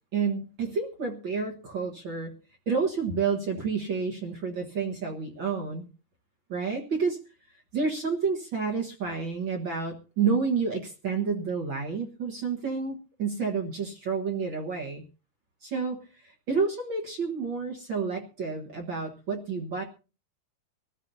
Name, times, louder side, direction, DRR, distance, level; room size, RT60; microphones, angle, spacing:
voice 1, 0.1-2.3 2.7-5.9 6.5-7.2 7.7-15.0 15.6-16.0 16.5-19.8, right 5 dB, 65° right, 2 dB, 1.2 m, -29 dB
23.0 x 14.5 x 2.7 m, 0.35 s
omnidirectional pair, 4.6 m